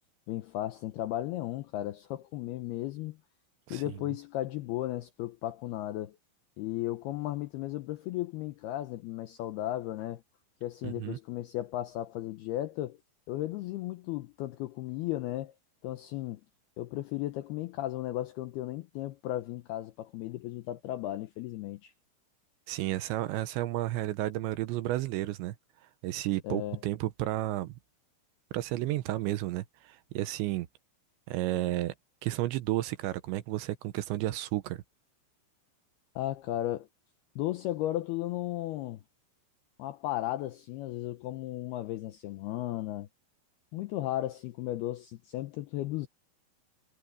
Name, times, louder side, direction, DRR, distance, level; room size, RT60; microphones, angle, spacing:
voice 1, 0.3-3.2 3.7-6.2 6.6-10.2 10.6-13.0 13.3-15.5 15.8-16.4 16.8-21.9 26.4-26.8 36.2-36.9 37.4-39.0 39.8-43.1 43.7-46.1, left 14 dB, 80° left, 2.3 m, -35 dB
voice 2, 10.8-11.2 22.7-25.6 26.0-27.8 28.5-30.7 31.3-31.9 32.2-34.8, right 16 dB, 80° right, 3.0 m, -32 dB
omnidirectional pair, 5.5 m